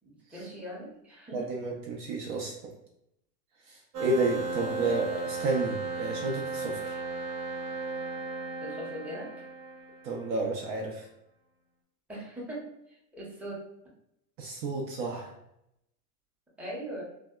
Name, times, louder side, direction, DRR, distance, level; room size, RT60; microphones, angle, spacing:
voice 1, 0.0-1.5 8.6-9.4 12.1-13.6 16.6-17.0, equal, 5° right, -5 dB, 0.6 m, -40 dB
voice 2, 1.3-2.7 3.7-7.0 10.0-11.1 14.4-15.3, right 2 dB, 45° right, 0 dB, 0.5 m, -31 dB
sound 1, 3.9-10.4, right 3 dB, 80° right, 0.9 m, -35 dB
2.6 x 2.2 x 2.2 m, 0.80 s
hypercardioid pair, 105°, 46 cm